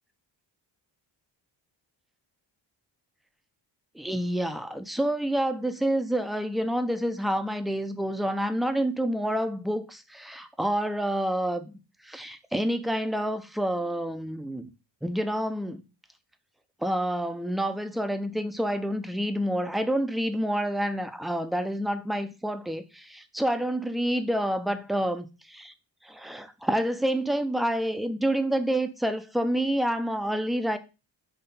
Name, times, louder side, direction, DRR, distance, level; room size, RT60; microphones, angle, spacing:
voice 1, 3.9-11.7 12.0-14.7 15.0-15.8 16.8-25.7 26.0-30.8, right 1 dB, ahead, 0.6 m, -28 dB
5.8 x 3.2 x 5.5 m
cardioid pair, 110°, 46 cm